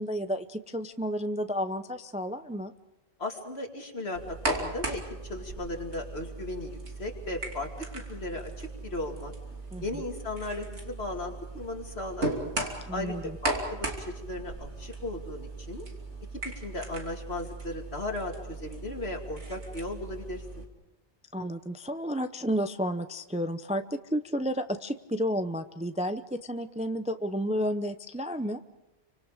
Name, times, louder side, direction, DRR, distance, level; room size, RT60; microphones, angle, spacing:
voice 1, 0.0-2.7 9.7-9.8 12.9-13.4 21.3-28.6, equal, 10° right, 9 dB, 0.5 m, -31 dB
voice 2, 3.2-9.3 9.8-12.3 12.9-15.9 16.6-20.6, left 2 dB, 65° left, 2 dB, 2.9 m, -36 dB
sound 1, 4.1-20.6, right 2 dB, 80° right, 3.2 m, -37 dB
29.0 x 25.0 x 5.1 m, 1.0 s
omnidirectional pair, 1.1 m